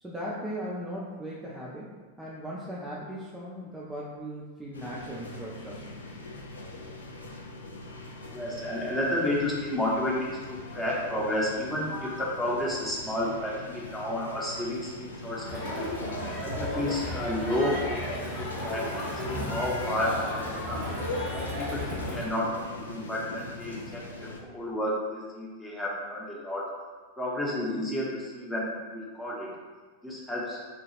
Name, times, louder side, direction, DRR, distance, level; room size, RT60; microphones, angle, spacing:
voice 1, 0.0-5.8, equal, 10° right, -6 dB, 0.4 m, -38 dB
sound 1, 4.7-24.4, left 2 dB, 75° left, 0.4 m, -42 dB
voice 2, 8.3-15.9 16.4-20.9 21.3-22.5 22.7-26.7 27.2-29.5 30.0-30.6, left 1 dB, 10° left, -5 dB, 0.8 m, -31 dB
Crowd, 15.4-22.2, left 1 dB, 45° left, 1.1 m, -34 dB
2.8 x 2.3 x 3.2 m, 1.4 s
figure-of-eight pair, 90°, 0 cm